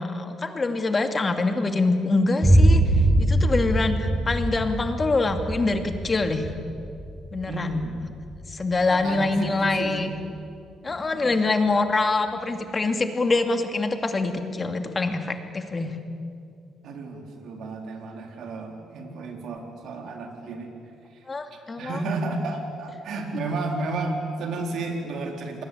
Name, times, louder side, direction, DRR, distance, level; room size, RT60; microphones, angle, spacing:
voice 1, 0.0-2.8 3.2-6.5 7.3-7.8 8.5-10.1 10.8-16.0 21.3-22.0, left 3 dB, 30° left, 6 dB, 2.6 m, -25 dB
Boom, 2.4-10.3, right 1 dB, 15° right, 5.5 m, -23 dB
voice 2, 7.5-8.1 8.9-10.1 10.9-11.3 16.8-20.7 21.1-21.3 21.8-25.6, right 2 dB, 75° right, 3 dB, 4.3 m, -32 dB
27.5 x 21.0 x 8.8 m, 2.4 s
cardioid pair, 90°, 0 cm